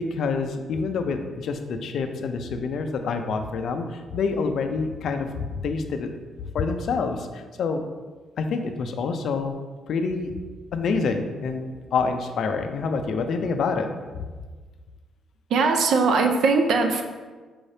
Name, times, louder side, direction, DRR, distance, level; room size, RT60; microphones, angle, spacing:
voice 1, 0.1-6.1 6.4-7.8 8.4-9.5 9.9-10.3 10.7-13.9 14.2-14.3, left 4 dB, 60° left, 6 dB, 0.3 m, -27 dB
voice 2, 15.5-17.0, right 4 dB, 65° right, 5 dB, 0.4 m, -20 dB
4.7 x 2.7 x 3.3 m, 1.4 s
cardioid pair, 150°, 0 cm